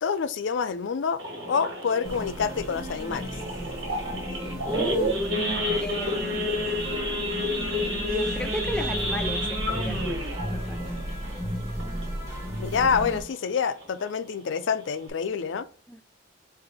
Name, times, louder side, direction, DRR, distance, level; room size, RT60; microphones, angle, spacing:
voice 1, 0.0-1.2 1.5-3.4 12.6-15.7, left 6 dB, 85° left, 0.4 m, -27 dB
Idling / Accelerating revving vroom / Sawing, 1.2-12.3 12.7-12.9 13.1-13.2 13.7-14.0 14.4-14.5 14.7-15.1, left 1 dB, 90° right, 1.6 m, -30 dB
sound 1, 2.0-13.2, equal, 15° right, 1.1 m, -34 dB
voice 2, 4.6-5.4 5.7-6.8 8.1-10.8 15.9-16.0, equal, 5° left, 0.4 m, -34 dB
6.0 x 2.6 x 3.3 m
head